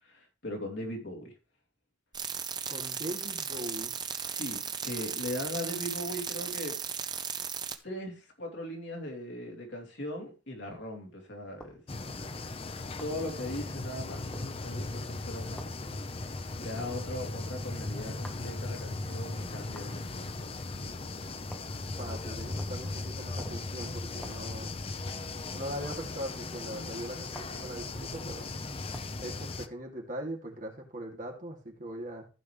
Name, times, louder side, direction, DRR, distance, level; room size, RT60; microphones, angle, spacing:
voice 1, 0.0-1.3 2.4-2.5 4.2-6.8 7.8-11.8 13.0-16.0 16.6-21.2, left 1 dB, 65° left, 2.9 m, -39 dB
sound 1, 2.1-7.8, right 7 dB, 20° right, 0.7 m, -36 dB
voice 2, 2.7-3.9 21.9-24.7 25.5-28.5 29.2-32.3, right 1 dB, 40° right, 2.6 m, -40 dB
sound 2, 11.6-11.8 13.0-13.2 14.3-14.5 15.6-15.8 16.8-17.0 18.2-18.5 19.7-19.9 21.5-21.8 22.6-22.9 23.4-23.7 24.2-24.5 25.9-26.1 27.3-27.6 28.9-29.2, equal, 5° left, 1.3 m, -47 dB
sound 3, 11.9-29.7, left 2 dB, 30° left, 0.6 m, -38 dB
15.5 x 5.3 x 3.2 m
head